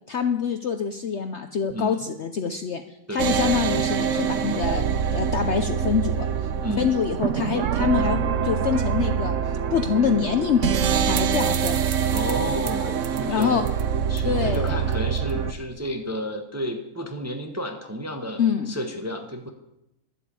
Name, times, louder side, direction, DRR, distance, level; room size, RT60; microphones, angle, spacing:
voice 1, 0.1-2.8 3.1-6.3 6.8-9.4 9.7-11.8 13.3-13.6 14.2-14.8 18.4-18.7, left 7 dB, 55° left, 7 dB, 0.9 m, -25 dB
voice 2, 1.7-2.0 3.1-3.3 6.6-6.9 12.1-13.6 14.1-18.4 18.7-19.5, equal, 10° right, 4 dB, 1.1 m, -31 dB
sound 1, 3.2-15.5, right 7 dB, 60° right, 1.0 m, -25 dB
12.0 x 8.3 x 8.4 m, 0.85 s
omnidirectional pair, 1.6 m